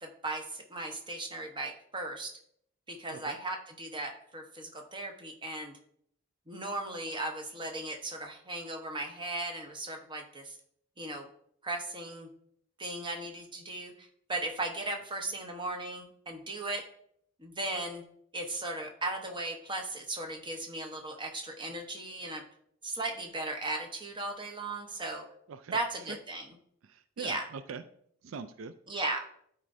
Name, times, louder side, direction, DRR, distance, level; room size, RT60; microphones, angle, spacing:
voice 1, 0.0-2.4 2.9-5.8 6.5-10.6 11.0-11.3 11.6-12.3 12.8-16.8 17.4-18.0 18.3-22.4 22.8-25.2 25.7-26.4 27.2-27.4 28.9-29.3, right 2 dB, 25° right, 4 dB, 0.9 m, -37 dB
voice 2, 25.5-26.2 26.8-27.8 28.2-28.7, right 5 dB, 75° right, 11 dB, 0.4 m, -43 dB
12.5 x 4.4 x 2.6 m, 0.69 s
head